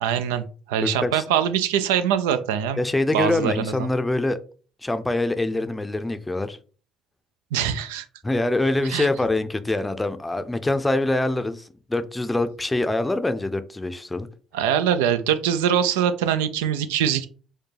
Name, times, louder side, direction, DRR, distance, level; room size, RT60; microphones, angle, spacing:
voice 1, 0.0-2.8 3.1-3.9 7.5-8.1 8.9-9.1 14.5-17.3, right 9 dB, 90° right, 0.3 m, -23 dB
voice 2, 0.8-1.2 2.8-4.4 4.8-6.6 8.2-14.3, left 2 dB, 15° left, 0.5 m, -24 dB
4.4 x 2.3 x 3.2 m
supercardioid pair, 65°, 0 cm